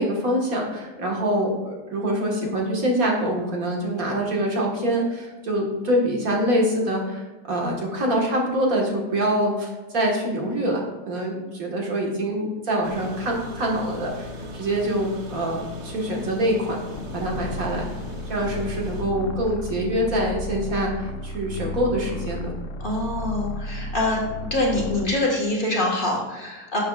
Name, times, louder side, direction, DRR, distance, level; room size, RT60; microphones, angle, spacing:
voice 1, 0.0-14.3 14.5-16.8 17.1-17.9 18.3-22.5, right 1 dB, 60° right, -1 dB, 2.0 m, -25 dB
sound 1, 12.8-19.0, left 1 dB, 75° right, 1.6 m, -37 dB
sound 2, 16.9-25.2, left 1 dB, 65° left, 0.8 m, -33 dB
voice 2, 22.8-24.2 24.5-26.8, left 2 dB, 35° left, -3 dB, 1.6 m, -24 dB
12.0 x 7.1 x 2.4 m, 1.2 s
omnidirectional pair, 1.7 m